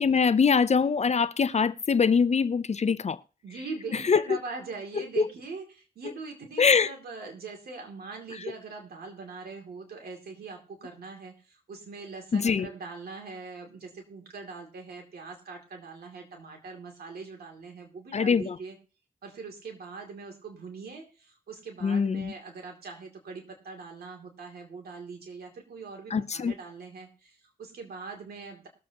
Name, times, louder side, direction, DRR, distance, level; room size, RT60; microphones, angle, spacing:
voice 1, 0.0-3.2 4.1-4.2 6.6-6.9 12.3-12.7 18.1-18.5 21.8-22.3 26.1-26.5, left 5 dB, 45° left, 0.5 m, -23 dB
voice 2, 3.4-18.8 19.2-28.7, right 4 dB, 90° right, 2.5 m, -42 dB
20.5 x 7.5 x 2.9 m
cardioid pair, 65°, 15 cm